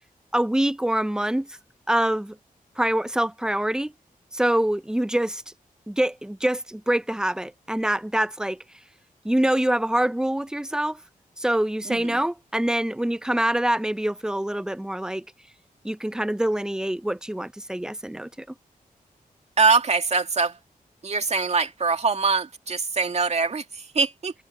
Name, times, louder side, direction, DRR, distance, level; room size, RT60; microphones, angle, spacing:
voice 1, 0.3-1.6 1.9-2.4 2.8-3.9 4.3-5.4 5.9-8.6 9.2-11.0 11.4-15.2 15.8-18.5, right 1 dB, 5° right, 0.5 m, -25 dB
voice 2, 11.9-12.2 19.6-20.6 21.0-24.3, right 4 dB, 45° right, 2.2 m, -23 dB
wide cardioid pair, 105°, 15 cm